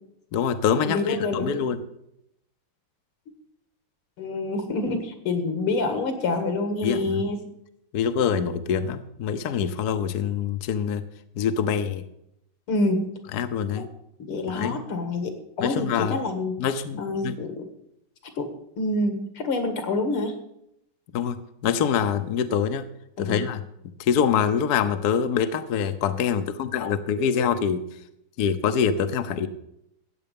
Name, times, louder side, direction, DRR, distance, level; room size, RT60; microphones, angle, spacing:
voice 1, 0.3-1.8 6.8-7.3 7.9-11.0 11.4-12.0 13.3-13.9 14.5-14.8 15.6-16.2 16.6-17.4 21.1-21.4 21.6-22.9 23.2-23.6 24.0-27.8 28.4-29.5, left 7 dB, 60° left, 9 dB, 1.1 m, -25 dB
voice 2, 0.9-1.7 4.2-7.4 12.7-13.1 13.7-13.9 14.2-16.6 17.0-17.7 18.4-18.5 18.8-20.3 23.2-23.4, left 2 dB, 80° left, 7 dB, 2.6 m, -27 dB
14.0 x 9.1 x 5.3 m, 0.78 s
omnidirectional pair, 2.3 m